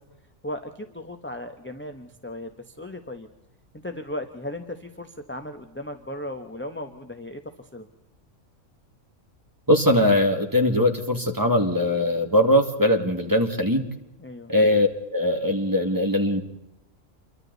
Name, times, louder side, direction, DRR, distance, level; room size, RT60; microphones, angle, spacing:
voice 1, 0.4-3.3 3.8-7.9 14.2-14.5, left 1 dB, 10° left, 6 dB, 1.0 m, -36 dB
voice 2, 9.7-13.8 14.5-16.4, left 1 dB, 15° right, 3 dB, 2.1 m, -21 dB
28.0 x 23.5 x 4.1 m, 0.91 s
omnidirectional pair, 1.3 m